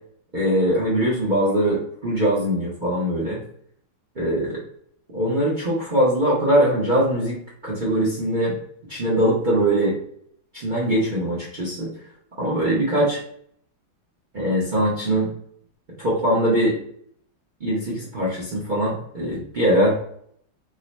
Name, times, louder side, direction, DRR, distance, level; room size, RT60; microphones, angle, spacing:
voice 1, 0.3-3.4 4.2-4.6 5.1-7.4 7.6-8.5 8.9-10.0 10.5-11.9 12.4-13.2 14.3-15.3 16.0-16.8 17.6-20.0, right 1 dB, 50° right, -6 dB, 0.5 m, -21 dB
3.8 x 2.2 x 4.1 m, 0.65 s
omnidirectional pair, 2.3 m